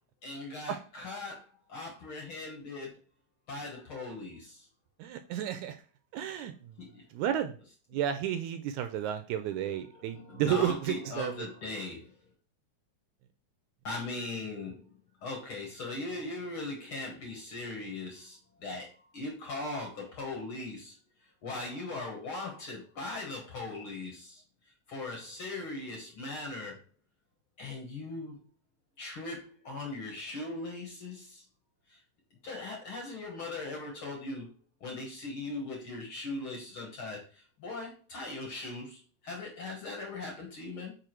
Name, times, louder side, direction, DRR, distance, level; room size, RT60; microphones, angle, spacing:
voice 1, 0.2-3.0 3.5-4.7 6.8-7.0 9.9-12.1 13.8-20.9 21.4-24.4 24.9-26.8 27.6-28.4 29.0-31.4 31.9-32.0 32.4-34.5 34.8-40.9, left 2 dB, 55° left, 1 dB, 1.6 m, -39 dB
voice 2, 5.0-5.8 6.1-6.8 7.1-7.6 7.9-11.5, right 10 dB, 80° right, 9 dB, 1.8 m, -32 dB
5.1 x 4.7 x 4.5 m, 0.39 s
omnidirectional pair, 3.7 m